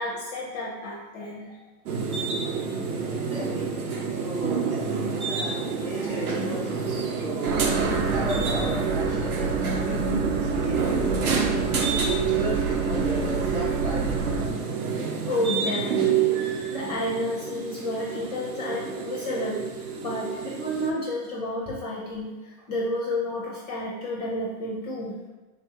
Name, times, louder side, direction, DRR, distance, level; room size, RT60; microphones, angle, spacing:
voice 1, 0.0-1.6 7.4-7.6 15.3-25.2, left 1 dB, 30° left, -3 dB, 0.4 m, -31 dB
sound 1, 1.9-20.9, right 6 dB, 85° right, 0.8 m, -28 dB
voice 2, 3.1-3.7 4.2-6.7 7.2-11.3 11.9-14.2 21.6-21.7, right 1 dB, 15° right, -6 dB, 0.6 m, -35 dB
sound 2, 7.5-14.5, right 4 dB, 60° right, 0.7 m, -28 dB
3.7 x 2.3 x 4.5 m, 1.2 s
supercardioid pair, 155°, 43 cm